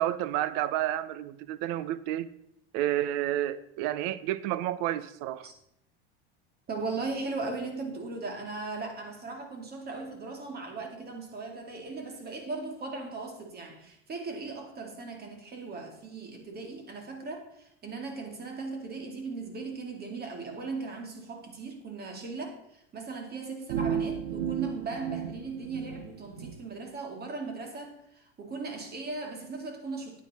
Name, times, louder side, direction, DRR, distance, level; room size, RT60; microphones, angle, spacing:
voice 1, 0.0-2.3 2.7-5.5, right 13 dB, 60° right, 0.7 m, -30 dB
voice 2, 6.7-30.2, right 3 dB, 30° right, 2.4 m, -38 dB
sound 1, 23.7-26.5, right 8 dB, 75° right, 1.1 m, -33 dB
9.5 x 9.1 x 4.2 m
supercardioid pair, 105°, 30 cm